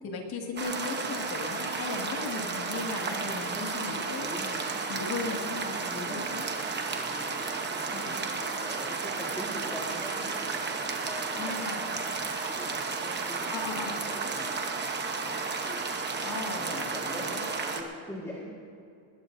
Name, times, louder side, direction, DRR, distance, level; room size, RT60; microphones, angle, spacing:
voice 1, 0.0-4.3 4.9-6.5 7.9-8.2 11.4-11.8 13.5-14.0 16.2-16.9 17.2-17.5, left 4 dB, 45° left, 1 dB, 2.2 m, -37 dB
sound 1, 0.6-17.8, right 4 dB, 20° right, 1.0 m, -33 dB
voice 2, 2.9-3.5 4.2-6.4 6.9-12.2 12.6-15.0 15.7-16.0 16.5-18.5, equal, 5° left, -4 dB, 1.7 m, -43 dB
20.0 x 20.0 x 2.7 m, 2.5 s
cardioid pair, 180°, 50 cm